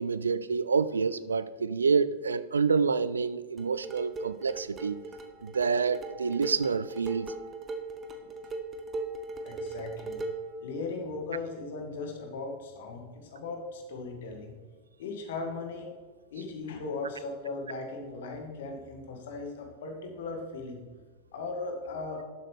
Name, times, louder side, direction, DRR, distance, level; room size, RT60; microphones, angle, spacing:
voice 1, 0.0-5.0 5.4-7.3, right 5 dB, 75° right, 0.4 m, -28 dB
sound 1, 3.6-10.5, right 3 dB, 20° right, 1.0 m, -39 dB
voice 2, 9.4-10.2 10.6-14.5 15.0-15.9 16.3-20.8 21.3-22.2, left 3 dB, 55° left, 1.8 m, -38 dB
12.0 x 7.8 x 3.3 m
figure-of-eight pair, 90°, 0 cm